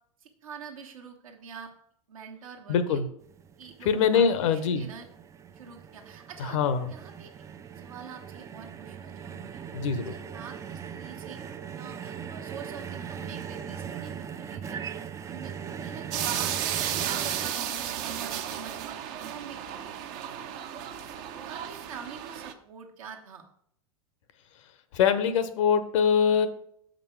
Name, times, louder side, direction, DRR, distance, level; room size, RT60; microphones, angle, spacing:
voice 1, 0.2-1.7 2.1-3.0 3.6-5.1 5.5-6.6 6.9-7.3 7.8-9.6 10.1-11.4 11.7-14.8 15.3-15.5 15.8-20.0 20.7-20.8 21.4-23.4, right 6 dB, 70° right, 2 dB, 1.3 m, -45 dB
voice 2, 2.7-3.1 3.8-4.9 6.4-6.9 9.7-10.2 24.9-26.5, left 7 dB, 60° left, 12 dB, 0.7 m, -23 dB
sound 1, 3.2-17.5, right 7 dB, 15° right, 0.3 m, -40 dB
sound 2, 16.1-22.5, right 10 dB, 45° right, 0.7 m, -33 dB
6.7 x 5.2 x 4.5 m, 0.69 s
figure-of-eight pair, 90°, 18 cm